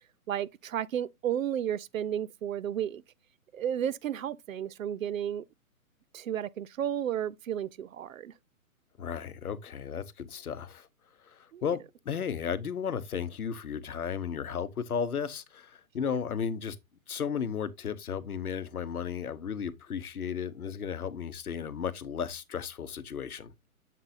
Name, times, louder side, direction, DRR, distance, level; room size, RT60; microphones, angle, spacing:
voice 1, 0.3-3.0 3.5-5.4 6.1-8.3 11.5-11.6 16.0-16.1, right 10 dB, 65° right, 0.6 m, -32 dB
voice 2, 9.0-10.9 11.2-16.8 17.1-23.5, left 7 dB, 85° left, 0.9 m, -34 dB
7.4 x 5.8 x 2.6 m
hypercardioid pair, 140°, 43 cm